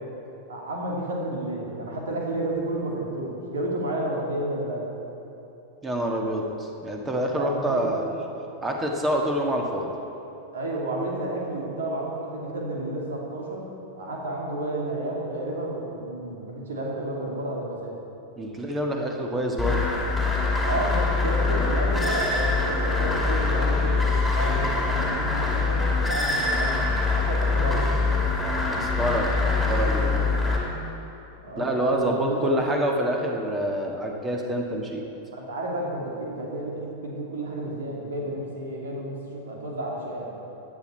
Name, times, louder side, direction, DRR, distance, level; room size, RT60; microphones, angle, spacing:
voice 1, 0.5-4.9 7.3-8.0 10.5-13.6 14.0-18.0 20.6-26.9 27.1-28.2 31.4-32.6 35.3-40.3, right 1 dB, 65° right, -2 dB, 2.6 m, -31 dB
voice 2, 5.8-8.0 8.6-9.9 18.4-19.8 28.7-29.4 29.7-30.3 31.6-35.0, right 1 dB, 15° right, 1 dB, 1.6 m, -27 dB
sound 1, 19.6-30.6, left 3 dB, ahead, 2.5 m, -24 dB
16.0 x 10.0 x 4.5 m, 2.9 s
figure-of-eight pair, 90°, 0 cm